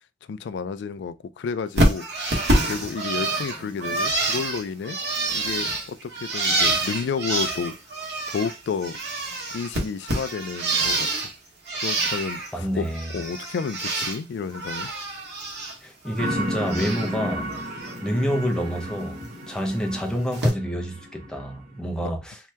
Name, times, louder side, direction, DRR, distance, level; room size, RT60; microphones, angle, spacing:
voice 1, 0.3-2.1 2.6-5.0 5.3-7.8 8.3-9.0 9.5-11.3 11.8-12.9 13.1-14.9 22.0-22.1, left 6 dB, 70° left, 0.3 m, -31 dB
Bird, 1.8-8.6 8.8-11.3 11.7-12.5 12.8-14.2 14.5-15.7 16.1-17.1 17.5-17.9 19.2-19.3 20.3-20.5, right 2 dB, 65° right, 1.2 m, -26 dB
voice 2, 12.5-13.1 15.8-17.5 18.0-22.4, equal, 5° left, 0.6 m, -28 dB
sound 1, 16.2-21.7, equal, 50° right, 0.6 m, -33 dB
2.8 x 2.2 x 3.3 m
head